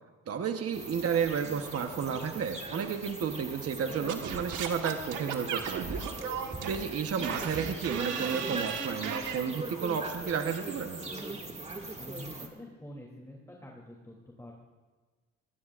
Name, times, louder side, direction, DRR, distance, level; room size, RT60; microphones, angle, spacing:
voice 1, 0.3-6.0 6.7-11.2, right 7 dB, 50° right, 5 dB, 1.1 m, -32 dB
sound 1, 0.7-12.5, right 2 dB, 20° right, 2.2 m, -40 dB
Singing / Scratching (performance technique), 4.1-9.4, right 7 dB, 90° right, 1.5 m, -36 dB
voice 2, 12.0-14.5, left 1 dB, 10° left, -2 dB, 3.0 m, -47 dB
21.5 x 19.0 x 2.5 m, 1.4 s
cardioid pair, 90°, 30 cm